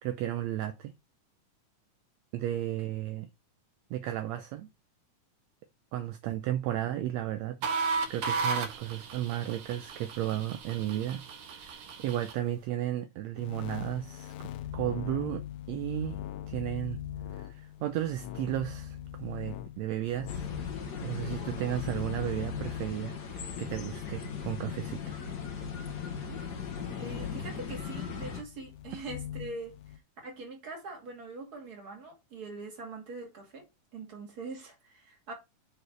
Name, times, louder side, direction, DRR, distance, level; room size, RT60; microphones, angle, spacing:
voice 1, 0.0-0.9 2.3-3.3 3.9-4.7 5.9-15.4 15.7-16.2 16.5-17.0 17.3-20.4 21.0-25.2, right 13 dB, 80° right, 1.6 m, -34 dB
sound 1, 7.6-12.5, right 5 dB, 60° right, 1.6 m, -35 dB
sound 2, 13.4-30.0, left 11 dB, 80° left, 2.1 m, -41 dB
sound 3, 20.3-28.4, left 5 dB, 65° left, 1.0 m, -40 dB
voice 2, 27.0-33.7 33.9-35.3, right 3 dB, 30° right, 2.4 m, -43 dB
6.9 x 4.2 x 4.6 m
omnidirectional pair, 3.6 m